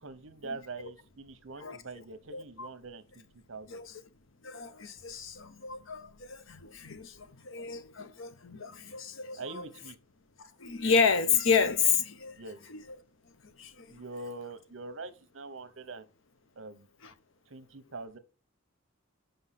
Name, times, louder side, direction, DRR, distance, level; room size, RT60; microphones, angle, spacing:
voice 1, 0.0-3.8 9.4-10.0 12.4-12.6 13.9-16.1 16.6-16.9 17.5-18.2, right 3 dB, 75° right, 1.0 m, -43 dB
voice 2, 2.3-2.7 3.7-3.9 4.4-9.7 10.4-12.4 12.7-12.8 13.4-13.9 17.0-17.1, left 6 dB, 75° left, 0.9 m, -30 dB
5.6 x 5.3 x 5.7 m
head